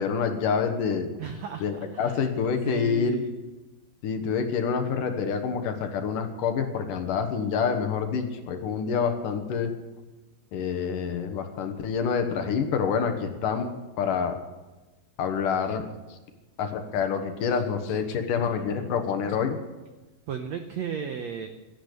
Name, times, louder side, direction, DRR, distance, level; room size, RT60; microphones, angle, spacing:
voice 1, 0.0-1.1 1.6-3.2 4.0-9.7 10.5-14.4 15.2-15.8 16.1-16.2 16.6-19.6, left 6 dB, 65° left, 6 dB, 2.7 m, -27 dB
voice 2, 1.2-2.3 2.6-3.4 18.3-18.9 20.3-21.5, right 7 dB, 80° right, 7 dB, 1.5 m, -35 dB
17.0 x 12.0 x 6.8 m, 1.1 s
omnidirectional pair, 4.4 m